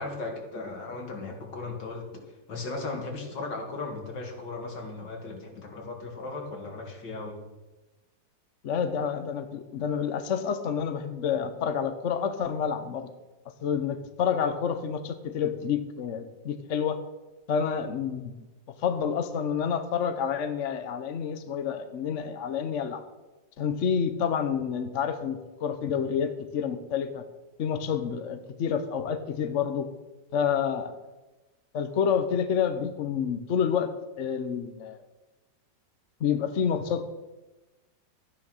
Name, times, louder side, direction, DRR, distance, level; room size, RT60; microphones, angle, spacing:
voice 1, 0.0-7.4, left 3 dB, 70° left, 2 dB, 2.9 m, -37 dB
voice 2, 8.6-13.1 13.6-17.0 17.5-18.3 18.8-23.0 23.6-27.2 27.6-29.9 30.3-30.9 31.7-33.9 34.2-35.0 36.2-37.1, left 7 dB, 55° left, 9 dB, 0.9 m, -28 dB
12.5 x 9.7 x 6.3 m, 1.1 s
omnidirectional pair, 2.0 m